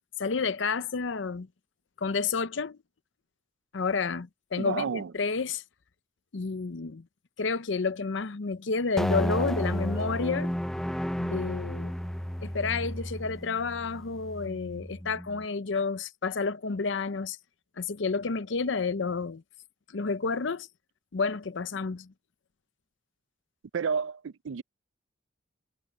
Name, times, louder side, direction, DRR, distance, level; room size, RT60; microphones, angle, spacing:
voice 1, 0.2-1.5 2.0-2.8 3.7-5.6 6.3-7.0 7.4-10.5 11.2-11.9 12.4-17.4 17.8-19.4 19.9-20.7 21.1-22.1, left 4 dB, 65° left, 0.6 m, -30 dB
voice 2, 4.6-5.1 23.7-24.6, right 6 dB, 75° right, 0.4 m, -31 dB
sound 1, 9.0-15.4, equal, ahead, 0.4 m, -33 dB
head